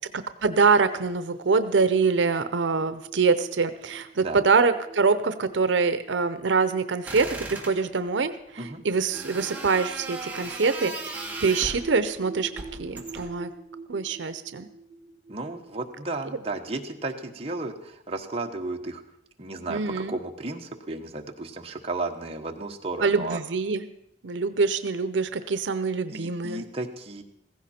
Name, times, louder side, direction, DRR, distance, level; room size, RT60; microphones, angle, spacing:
voice 1, 0.4-8.3 8.6-12.5 12.8-13.5 13.9-14.7 19.7-20.1 23.0-23.9 24.2-26.6, right 4 dB, 85° right, 11 dB, 0.7 m, -24 dB
sound 1, 0.9-17.2, right 3 dB, 60° right, 1.7 m, -46 dB
sound 2, 7.0-7.8 9.1-11.9 12.5-13.4, right 3 dB, 10° right, 1.9 m, -36 dB
voice 2, 15.3-19.0 19.4-23.4 26.1-27.2, right 2 dB, 35° right, 2 dB, 1.2 m, -34 dB
15.5 x 15.5 x 4.3 m, 0.78 s
head